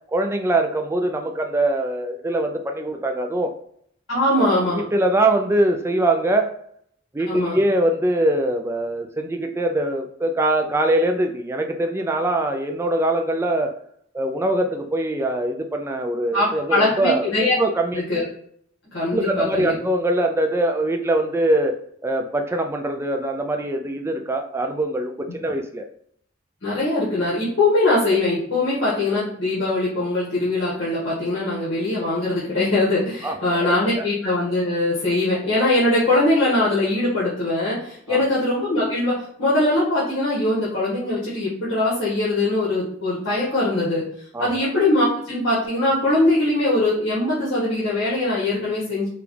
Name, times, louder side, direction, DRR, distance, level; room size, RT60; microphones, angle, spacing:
voice 1, 0.1-3.6 4.4-6.5 7.1-13.7 14.1-17.3 17.6-18.0 19.1-21.8 22.0-25.9 33.2-34.0 38.1-38.2 44.3-44.7, right 1 dB, 15° right, 4 dB, 0.3 m, -23 dB
voice 2, 4.1-4.8 7.3-7.6 16.3-17.5 17.9-18.2 18.9-19.7 26.6-44.0 44.4-49.1, left 2 dB, 70° left, -9 dB, 1.6 m, -21 dB
5.0 x 2.4 x 3.2 m, 0.64 s
head